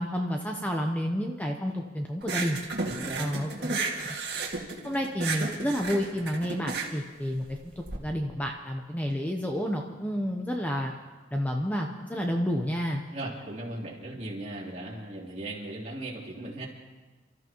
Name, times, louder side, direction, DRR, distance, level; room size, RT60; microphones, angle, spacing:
voice 1, 0.0-2.6 3.2-3.7 4.8-10.9 11.3-13.0, equal, 10° left, 2 dB, 0.8 m, -30 dB
sound 1, 2.2-8.0, right 3 dB, 60° right, 2.0 m, -33 dB
voice 2, 2.9-3.4 13.1-16.6, right 1 dB, 35° right, -4 dB, 3.2 m, -37 dB
29.0 x 13.5 x 3.0 m, 1.3 s
head